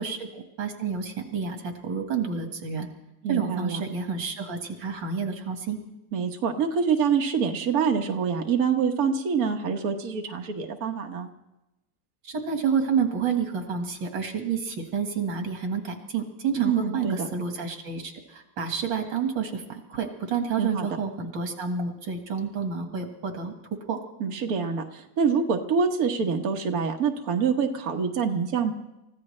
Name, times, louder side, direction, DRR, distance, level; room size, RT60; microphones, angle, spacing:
voice 1, 0.0-2.9 3.3-5.8 12.2-23.5 23.9-24.0, right 6 dB, 85° right, 5 dB, 2.4 m, -29 dB
voice 2, 3.2-3.8 6.1-11.3 16.6-17.3 20.6-20.9 24.2-28.7, right 6 dB, 55° right, 3 dB, 1.5 m, -26 dB
29.5 x 15.0 x 3.3 m, 0.96 s
omnidirectional pair, 1.9 m